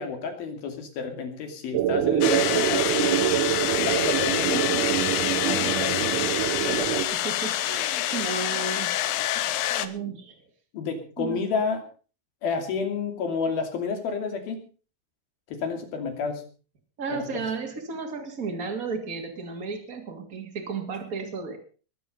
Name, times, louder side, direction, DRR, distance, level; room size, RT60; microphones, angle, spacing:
voice 1, 0.0-4.9 5.5-6.2 6.6-7.1 10.7-11.8 12.4-14.7 15.5-16.4 17.1-17.4, left 5 dB, 50° left, 5 dB, 4.1 m, -31 dB
sound 1, 1.7-7.1, right 12 dB, 85° right, 3.6 m, -25 dB
sound 2, 2.2-9.9, left 14 dB, 75° left, 2.8 m, -27 dB
voice 2, 7.2-9.0 9.7-10.3 11.2-11.4 17.0-21.6, right 5 dB, 30° right, 4 dB, 1.7 m, -33 dB
22.0 x 8.9 x 5.4 m, 0.38 s
omnidirectional pair, 6.0 m